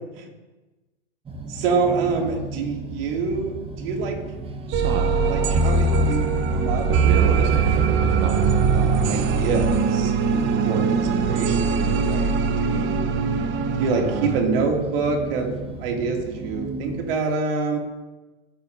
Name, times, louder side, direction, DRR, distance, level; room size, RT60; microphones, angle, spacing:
sound 1, 1.3-17.2, right 2 dB, 15° right, 1.3 m, -35 dB
voice 1, 1.5-4.2 5.3-7.5 8.7-10.1 10.6-13.1 13.8-15.5 15.8-17.8, right 4 dB, 55° right, 1 dB, 2.5 m, -26 dB
sound 2, 4.7-14.4, right 5 dB, 35° right, 0.9 m, -21 dB
17.0 x 8.3 x 2.7 m, 1.2 s
hypercardioid pair, 110°, 34 cm